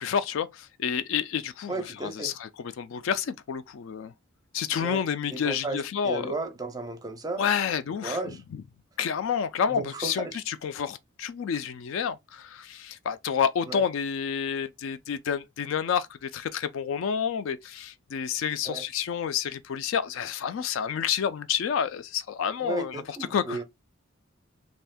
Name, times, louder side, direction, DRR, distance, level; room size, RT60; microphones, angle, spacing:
voice 1, 0.0-1.7 2.0-4.1 4.5-6.3 7.4-8.2 8.5-8.6 9.0-23.0 23.3-23.6, left 7 dB, 65° left, 0.3 m, -29 dB
voice 2, 1.7-2.3 4.8-5.0 5.3-7.4 7.9-8.4 9.7-10.4 13.7-13.9 18.6-18.8 22.6-23.6, right 3 dB, 20° right, 0.5 m, -34 dB
2.6 x 2.4 x 3.4 m
head